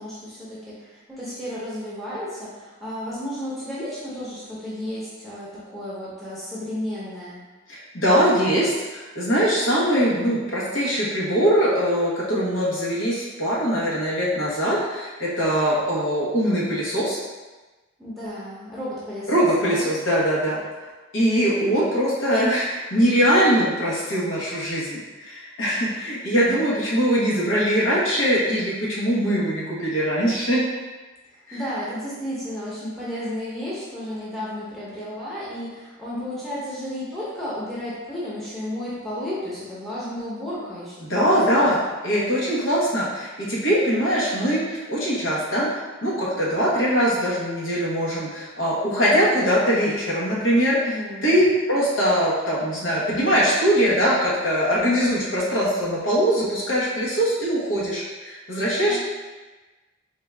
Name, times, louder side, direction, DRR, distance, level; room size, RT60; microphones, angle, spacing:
voice 1, 0.0-7.4 18.0-19.9 21.4-21.9 31.3-41.8 50.7-51.4 58.8-59.0, left 1 dB, ahead, -10 dB, 0.8 m, -33 dB
voice 2, 7.7-17.2 19.3-20.6 21.1-30.7 31.5-31.6 41.1-41.8 42.0-44.6 44.9-50.8 51.2-59.0, equal, 75° left, -7 dB, 1.2 m, -22 dB
3.8 x 2.4 x 3.3 m, 1.2 s
head